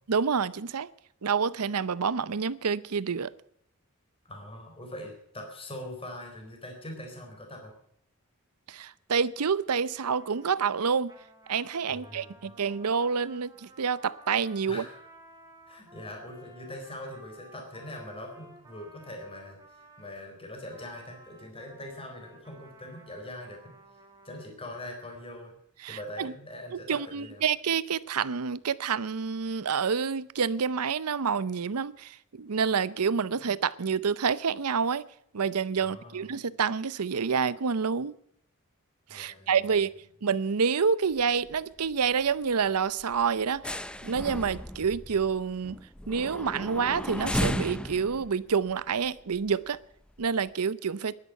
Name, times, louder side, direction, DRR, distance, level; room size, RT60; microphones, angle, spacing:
voice 1, 0.1-0.9 1.2-3.3 8.7-11.1 11.5-14.8 25.8-26.3 26.7-35.1 35.3-38.1 39.1-39.9 40.2-43.8 44.0-45.8 46.1-49.8 50.2-51.1, right 6 dB, 85° right, 0.7 m, -28 dB
voice 2, 4.3-7.7 11.9-12.5 14.7-15.0 15.7-19.6 20.0-23.7 24.2-25.5 25.8-27.4 35.8-36.4 39.1-39.6, left 1 dB, 25° left, 4.0 m, -42 dB
Trumpet, 10.0-20.2 20.7-24.5, right 1 dB, 15° right, 2.3 m, -54 dB
sound 1, 41.1-41.6 41.9-42.1 42.4-42.6 43.0-49.7 50.2-50.3, left 1 dB, 5° left, 0.5 m, -35 dB
11.5 x 11.0 x 9.1 m
head